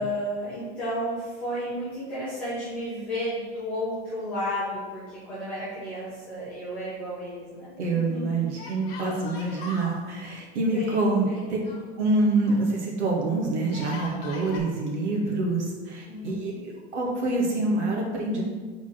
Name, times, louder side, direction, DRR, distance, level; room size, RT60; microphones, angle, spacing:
voice 1, 0.0-8.5 10.7-11.6 16.1-16.6, equal, 5° left, -13 dB, 0.3 m, -33 dB
Yell, 5.3-6.2 6.4-6.5 8.5-10.0 11.2-12.6 13.6-14.6, left 3 dB, 35° left, 1.4 m, -41 dB
voice 2, 7.8-11.6 12.0-16.5 16.9-18.4, right 2 dB, 80° right, -2 dB, 1.9 m, -26 dB
4.5 x 4.5 x 5.8 m, 1.5 s
supercardioid pair, 175°, 34 cm